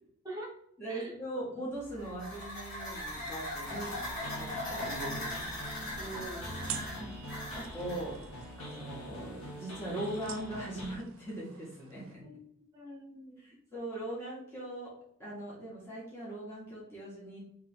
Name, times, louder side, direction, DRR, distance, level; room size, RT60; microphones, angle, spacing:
voice 1, 0.8-3.9 4.3-5.8 7.6-8.2 8.6-12.2 13.4-14.9 15.2-17.4, right 1 dB, 10° left, -8 dB, 1.4 m, -40 dB
sound 1, 1.8-8.1, left 1 dB, 45° left, 1.5 m, -40 dB
sound 2, 3.0-12.1, right 10 dB, 60° right, 0.6 m, -50 dB
sound 3, 3.6-11.0, equal, 75° left, 0.9 m, -44 dB
voice 2, 6.0-7.1 12.2-12.4 12.7-13.6, right 1 dB, 15° right, 0 dB, 1.1 m, -45 dB
3.5 x 3.0 x 3.5 m, 0.70 s
head